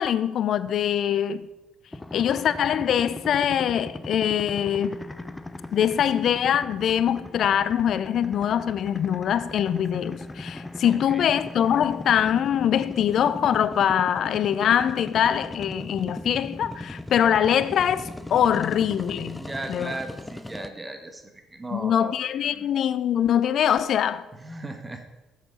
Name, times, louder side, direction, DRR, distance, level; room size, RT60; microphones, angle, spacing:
voice 1, 0.0-1.5 2.1-5.0 5.7-19.4 19.7-20.0 21.7-24.3, left 9 dB, 60° left, 0.4 m, -23 dB
sound 1, 1.9-20.7, left 2 dB, 15° left, 0.5 m, -38 dB
voice 2, 10.9-11.3 19.4-22.1 22.4-22.7 24.4-25.0, right 2 dB, 20° right, 1.3 m, -37 dB
6.6 x 6.4 x 5.0 m
supercardioid pair, 60°, 0 cm